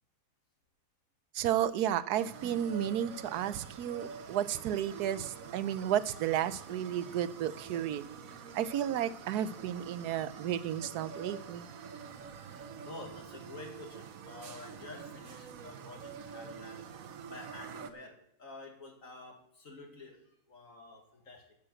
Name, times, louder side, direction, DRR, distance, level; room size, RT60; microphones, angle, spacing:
voice 1, 1.3-8.0 8.5-11.7, right 10 dB, 90° right, 15 dB, 1.2 m, -32 dB
sound 1, 2.2-17.9, right 6 dB, 65° right, 1.2 m, -47 dB
voice 2, 12.4-16.9 17.3-21.5, left 2 dB, 55° left, 2 dB, 2.4 m, -49 dB
10.5 x 7.2 x 7.7 m, 0.76 s
omnidirectional pair, 1.6 m